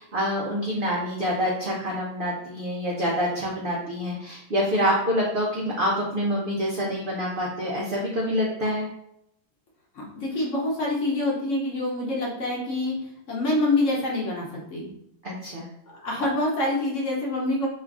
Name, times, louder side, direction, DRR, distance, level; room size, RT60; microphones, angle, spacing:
voice 1, 0.0-8.9 15.2-15.7, equal, 70° right, -3 dB, 0.5 m, -26 dB
voice 2, 9.9-14.9 16.0-17.7, left 2 dB, 55° left, -3 dB, 1.1 m, -26 dB
3.1 x 2.4 x 3.4 m, 0.76 s
omnidirectional pair, 1.7 m